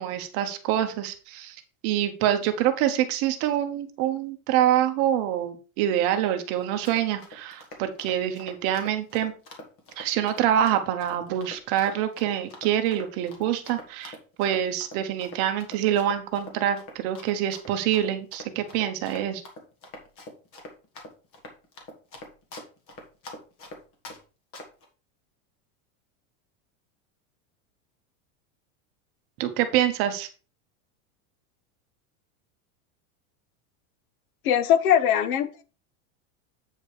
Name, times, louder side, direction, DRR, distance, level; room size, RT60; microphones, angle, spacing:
voice 1, 0.0-1.6 1.8-9.3 10.0-19.4 29.4-30.3, right 11 dB, 35° right, 7 dB, 1.1 m, -26 dB
Run, 6.6-24.2 24.5-24.9, left 1 dB, 30° left, 1.9 m, -44 dB
voice 2, 34.4-35.6, left 9 dB, 85° left, 14 dB, 1.2 m, -21 dB
8.4 x 5.1 x 4.8 m, 0.35 s
supercardioid pair, 180°, 42 cm